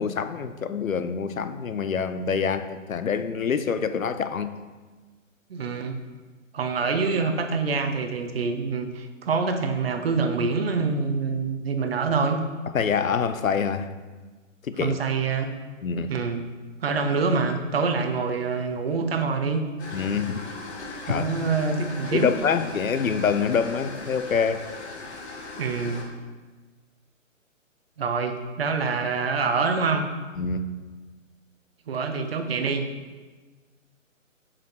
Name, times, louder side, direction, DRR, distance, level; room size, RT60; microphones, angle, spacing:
voice 1, 0.0-4.5 12.7-13.9 14.6-15.0 15.8-16.1 19.9-20.4 21.1-21.3 22.1-24.7 30.4-30.7, left 6 dB, 85° left, 11 dB, 0.6 m, -26 dB
voice 2, 5.5-6.0 6.5-12.4 14.8-15.5 16.1-16.4 16.8-19.6 21.1-22.3 25.6-26.1 28.0-30.0 31.9-32.9, right 4 dB, 50° right, 6 dB, 0.8 m, -26 dB
sound 1, 19.8-26.0, left 3 dB, 55° left, 1.4 m, -39 dB
5.7 x 5.1 x 4.6 m, 1.3 s
figure-of-eight pair, 140°, 39 cm